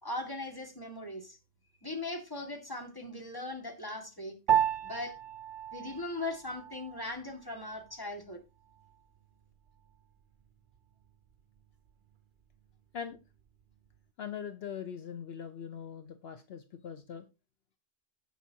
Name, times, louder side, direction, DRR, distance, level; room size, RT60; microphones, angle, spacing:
voice 1, 0.0-1.4 1.8-4.4 4.8-5.1 5.7-8.4, left 2 dB, 20° left, 3 dB, 2.1 m, -39 dB
Piano, 4.5-14.1, right 10 dB, 55° right, 0.7 m, -36 dB
voice 2, 14.2-17.3, left 8 dB, 65° left, 9 dB, 1.0 m, -41 dB
16.5 x 5.7 x 2.8 m, 0.27 s
omnidirectional pair, 1.1 m